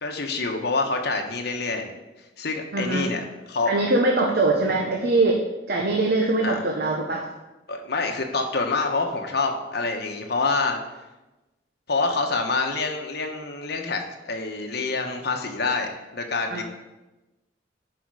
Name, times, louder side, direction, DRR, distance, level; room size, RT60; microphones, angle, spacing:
voice 1, 0.0-1.9 2.4-3.7 6.4-6.6 7.7-10.8 11.9-16.6, left 3 dB, 60° left, 3 dB, 1.2 m, -26 dB
voice 2, 2.7-3.1 3.7-7.2 16.5-16.6, right 2 dB, 60° right, 1 dB, 0.9 m, -22 dB
10.5 x 5.0 x 4.9 m, 1.1 s
head